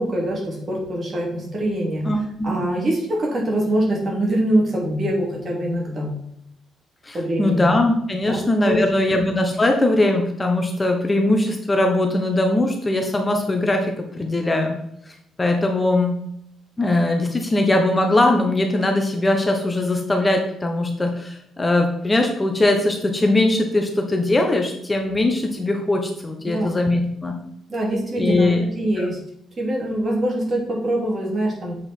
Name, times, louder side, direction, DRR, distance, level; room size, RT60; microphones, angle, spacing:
voice 1, 0.0-2.1 2.4-6.1 7.1-7.7 8.2-8.8 26.5-26.7 27.7-29.2 29.6-31.7, right 1 dB, 40° right, -2 dB, 3.2 m, -24 dB
voice 2, 2.0-2.5 7.0-14.7 15.1-16.2 16.8-27.4 28.2-28.6 29.0-29.1, left 2 dB, 20° left, 3 dB, 1.2 m, -20 dB
7.9 x 5.2 x 4.5 m, 0.76 s
cardioid pair, 90°, 0 cm